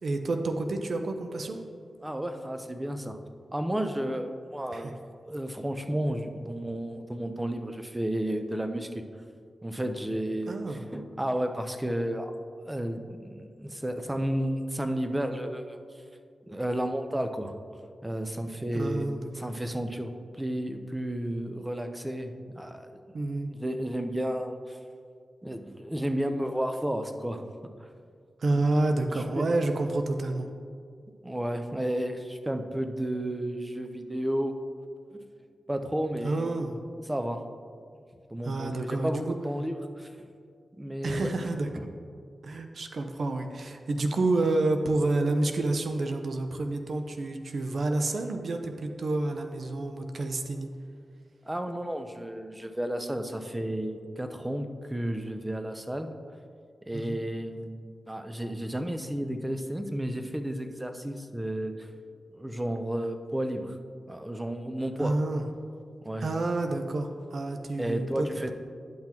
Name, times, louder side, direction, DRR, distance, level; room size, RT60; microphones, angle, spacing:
voice 1, 0.0-1.6 4.7-4.9 10.5-10.9 18.7-19.3 23.1-23.5 28.4-30.5 36.2-36.8 38.4-39.4 41.0-41.7 42.4-50.7 56.9-57.2 65.0-65.4 66.2-68.5, right 2 dB, 70° right, 6 dB, 0.5 m, -29 dB
voice 2, 2.0-3.2 3.5-5.0 5.3-9.0 9.6-12.3 12.7-15.8 16.5-17.5 18.0-19.1 19.4-20.1 20.4-23.0 23.5-24.8 25.4-27.4 27.8-27.9 29.3-29.5 31.2-34.5 35.7-36.4 37.1-37.4 38.3-40.2 40.8-41.3 41.7-41.8 51.4-56.1 56.9-57.8 58.1-61.9 62.3-63.8 64.1-65.1 66.0-66.3 67.8-68.5, right 1 dB, 15° right, 7 dB, 0.7 m, -32 dB
10.5 x 5.9 x 2.9 m, 2.2 s
cardioid pair, 50°, 0 cm